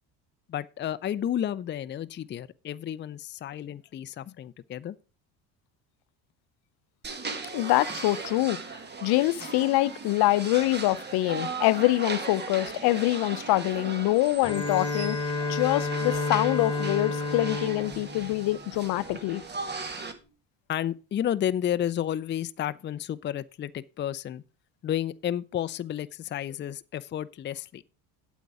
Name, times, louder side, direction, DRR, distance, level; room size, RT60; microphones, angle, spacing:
voice 1, 0.5-5.0 20.7-24.4 24.8-27.8, left 10 dB, 30° left, 0.5 m, -31 dB
sound 1, 7.0-20.1, right 4 dB, 25° right, 1.8 m, -38 dB
voice 2, 7.5-8.6 9.0-19.4, left 18 dB, 70° left, 0.7 m, -25 dB
Bowed string instrument, 14.4-19.2, left 3 dB, 15° left, 2.3 m, -31 dB
8.3 x 8.2 x 4.8 m
cardioid pair, 115°, 39 cm